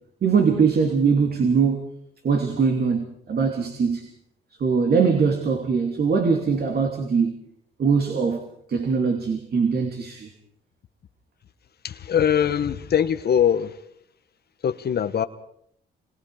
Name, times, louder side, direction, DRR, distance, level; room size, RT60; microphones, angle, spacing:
voice 1, 0.2-1.9 2.2-4.1 4.6-7.3 7.8-8.4 8.7-10.3, right 5 dB, 55° right, 3.1 m, -21 dB
voice 2, 11.8-13.7 14.6-15.3, left 8 dB, 55° left, 1.2 m, -22 dB
27.5 x 22.0 x 5.0 m
cardioid pair, 90°, 20 cm